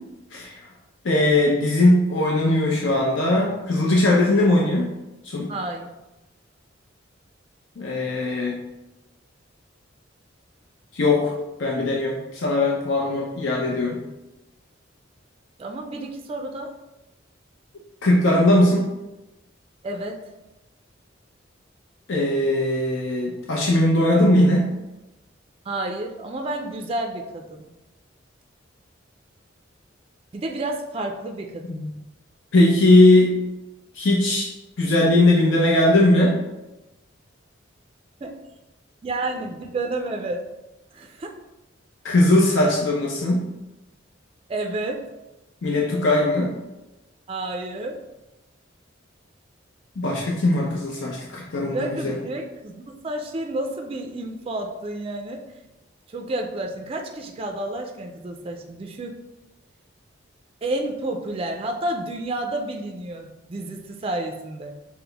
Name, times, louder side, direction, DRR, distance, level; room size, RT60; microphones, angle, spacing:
voice 1, 1.0-4.9 5.2-5.5 7.8-8.6 10.9-11.3 11.6-14.0 18.0-18.8 22.1-24.7 31.7-31.9 32.5-33.4 34.0-34.5 34.8-36.4 42.0-43.5 45.6-46.5 50.0-52.2, left 1 dB, 75° left, -3 dB, 0.6 m, -19 dB
voice 2, 5.5-5.9 15.6-16.7 19.8-20.2 25.7-27.7 30.3-31.9 38.2-38.4 39.0-40.4 40.9-41.3 44.5-45.0 47.3-48.0 51.7-55.4 56.1-59.2 60.6-64.7, right 2 dB, 30° right, 3 dB, 0.3 m, -30 dB
5.9 x 2.0 x 3.3 m, 1.0 s
head